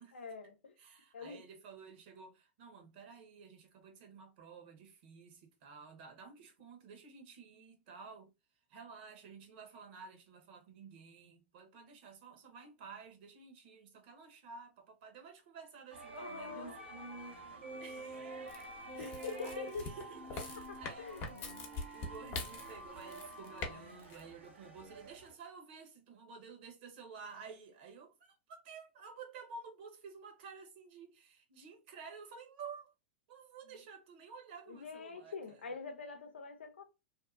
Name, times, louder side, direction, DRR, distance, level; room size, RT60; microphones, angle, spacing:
voice 1, 0.1-0.7 1.1-1.4 16.1-16.8 19.0-19.8 20.7-21.2 33.7-33.8 34.7-36.8, left 5 dB, 85° left, 0.6 m, -45 dB
voice 2, 0.8-8.3 8.7-17.1 17.4-18.4 19.0-19.1 19.4-32.9 33.3-35.7, right 5 dB, 60° right, 1.1 m, -52 dB
sound 1, 15.9-25.3, right 2 dB, 80° right, 0.9 m, -48 dB
sound 2, 18.5-23.7 24.0-24.2, left 3 dB, 40° left, 0.8 m, -43 dB
2.7 x 2.2 x 2.5 m
hypercardioid pair, 100°, 6 cm